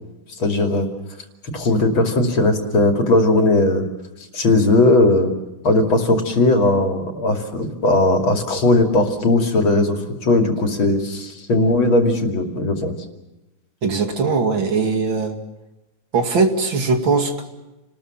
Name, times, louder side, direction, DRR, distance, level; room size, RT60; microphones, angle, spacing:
voice 1, 0.4-0.9 1.5-3.8 4.3-5.3 5.6-12.9, left 2 dB, 85° left, 4 dB, 3.4 m, -18 dB
voice 2, 13.8-15.4 16.1-17.4, right 4 dB, 70° right, 5 dB, 3.1 m, -20 dB
29.5 x 20.0 x 7.4 m, 1.0 s
omnidirectional pair, 2.2 m